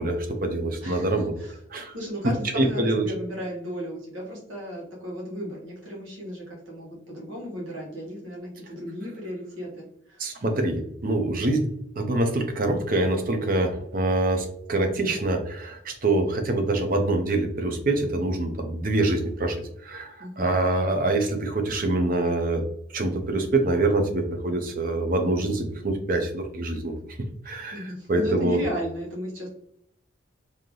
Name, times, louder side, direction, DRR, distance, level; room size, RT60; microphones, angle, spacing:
voice 1, 0.0-1.3 1.7-1.9 2.5-3.0 10.2-11.7 12.0-22.6 22.9-27.2 27.5-28.6, right 2 dB, 45° right, 5 dB, 0.6 m, -25 dB
voice 2, 0.8-1.6 1.9-10.3 20.2-20.7 27.7-29.5, equal, 85° right, -2 dB, 1.4 m, -35 dB
3.3 x 2.8 x 3.8 m, 0.73 s
head